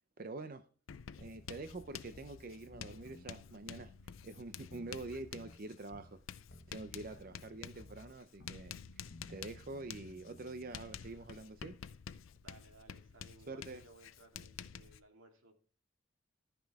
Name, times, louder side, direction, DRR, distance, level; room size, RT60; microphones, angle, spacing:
voice 1, 0.2-0.6 1.2-3.9 4.2-6.2 6.7-9.0 9.3-11.8 13.5-13.8, right 2 dB, 45° right, 9 dB, 0.6 m, -46 dB
Writing, 0.9-15.0, left 7 dB, 90° left, 0.5 m, -50 dB
sound 1, 1.2-6.2 6.5-11.3, left 1 dB, 70° left, 1.4 m, -58 dB
voice 2, 12.3-15.6, right 2 dB, 80° right, 4 dB, 2.3 m, -61 dB
14.0 x 6.1 x 3.5 m, 0.40 s
head